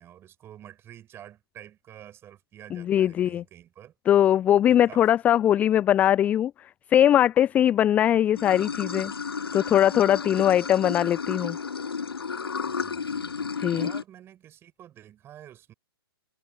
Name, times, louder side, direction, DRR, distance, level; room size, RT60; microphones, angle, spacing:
voice 1, 0.0-3.9 4.7-5.0 10.1-10.7 12.6-15.7, right 11 dB, 20° right, 7.7 m, -49 dB
voice 2, 2.7-3.4 4.1-6.5 6.9-9.1 9.5-11.6 13.6-13.9, left 11 dB, 10° left, 0.4 m, -21 dB
Water / Sink (filling or washing), 8.4-14.0, left 5 dB, 70° left, 1.1 m, -32 dB
figure-of-eight pair, 120°, 13 cm